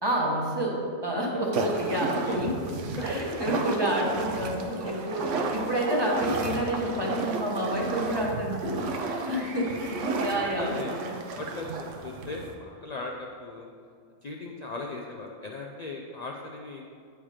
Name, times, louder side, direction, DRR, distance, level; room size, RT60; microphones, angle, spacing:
voice 1, 0.0-2.8 3.0-8.9 9.3-11.1, right 1 dB, 20° right, -2 dB, 0.9 m, -29 dB
sound 1, 1.5-12.5, right 3 dB, 70° right, 1.0 m, -33 dB
voice 2, 9.4-9.8 10.6-10.9 11.4-13.7 14.2-16.9, left 3 dB, 70° left, 0 dB, 0.3 m, -38 dB
8.8 x 4.5 x 4.9 m, 2.3 s
omnidirectional pair, 1.4 m